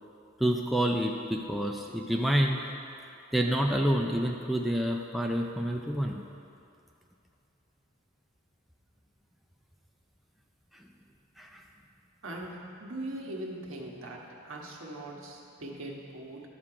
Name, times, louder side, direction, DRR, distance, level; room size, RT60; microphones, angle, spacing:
voice 1, 0.4-2.6 3.3-6.2 10.7-10.8 11.4-11.6, equal, ahead, 0 dB, 0.4 m, -28 dB
voice 2, 12.2-16.4, right 1 dB, 75° right, -1 dB, 1.4 m, -40 dB
11.5 x 7.4 x 4.9 m, 2.5 s
head